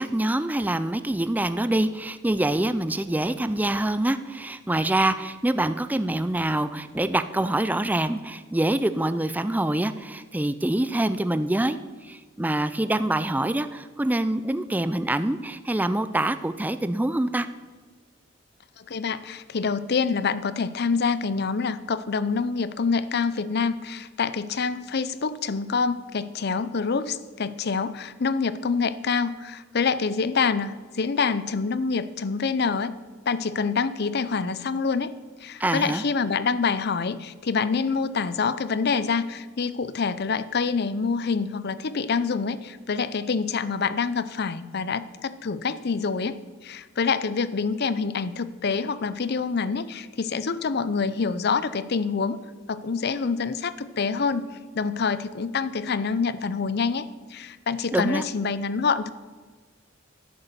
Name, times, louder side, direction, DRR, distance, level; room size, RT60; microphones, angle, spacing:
voice 1, 0.0-17.5 35.6-36.0 57.9-58.2, right 1 dB, 10° right, 11 dB, 0.4 m, -25 dB
voice 2, 18.8-32.9 33.3-35.2 35.4-52.4 52.7-54.4 54.7-59.1, left 5 dB, 55° left, 15 dB, 0.6 m, -26 dB
11.0 x 8.8 x 6.8 m, 1.4 s
head